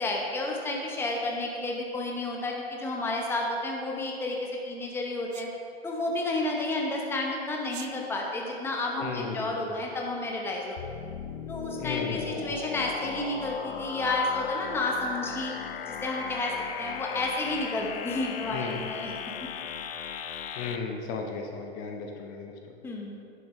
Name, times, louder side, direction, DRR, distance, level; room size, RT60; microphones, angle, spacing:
voice 1, 0.0-5.5 5.8-10.8 11.5-15.5 15.9-19.1 22.8-23.2, left 2 dB, 5° left, -1 dB, 0.9 m, -31 dB
Sneeze, 5.3-5.5 7.6-7.9, right 12 dB, 40° right, 0.5 m, -43 dB
voice 2, 9.0-9.7 11.8-12.5 18.5-18.8 20.6-22.5, left 5 dB, 40° left, 2 dB, 0.9 m, -35 dB
sound 1, 10.8-20.8, left 8 dB, 65° left, 0.6 m, -37 dB
9.8 x 7.2 x 3.1 m, 2.5 s
hypercardioid pair, 115°, 32 cm